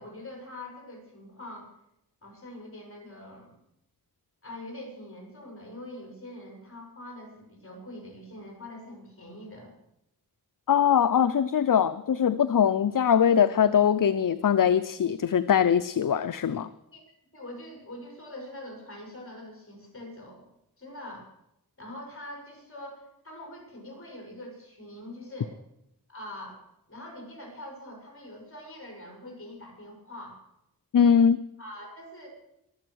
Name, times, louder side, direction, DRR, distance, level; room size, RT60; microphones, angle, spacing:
voice 1, 0.0-1.7 2.2-3.6 4.4-9.7 16.9-17.0 17.3-20.5 20.8-21.3 21.8-25.5 26.1-26.6 26.9-30.4 31.6-32.3, left 1 dB, 35° left, 0 dB, 6.0 m, -43 dB
voice 2, 10.7-16.7 30.9-31.4, left 8 dB, 55° left, 13 dB, 0.5 m, -22 dB
23.0 x 7.7 x 6.3 m, 0.85 s
wide cardioid pair, 70°, 38 cm